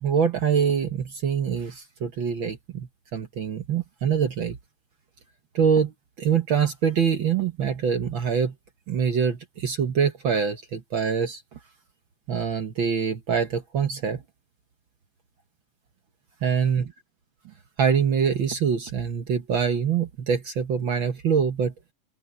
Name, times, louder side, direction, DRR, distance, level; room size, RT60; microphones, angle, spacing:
voice 1, 0.0-4.6 5.5-5.9 6.2-8.5 8.9-11.4 12.3-14.2 16.4-16.9 17.8-21.7, right 7 dB, 60° right, 1.3 m, -24 dB
open air
omnidirectional pair, 3.7 m